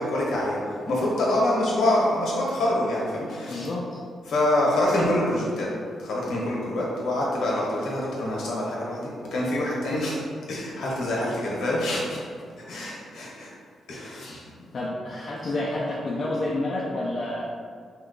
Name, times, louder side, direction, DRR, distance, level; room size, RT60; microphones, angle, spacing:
voice 1, 0.0-3.7 4.3-5.7 6.0-10.2 10.5-12.2 12.6-13.5 13.9-14.5, left 1 dB, 80° left, -4 dB, 0.9 m, -26 dB
voice 2, 3.5-4.0 14.7-17.4, left 2 dB, 45° left, -4 dB, 0.4 m, -29 dB
3.0 x 2.3 x 3.7 m, 2.1 s
cardioid pair, 120°, 0 cm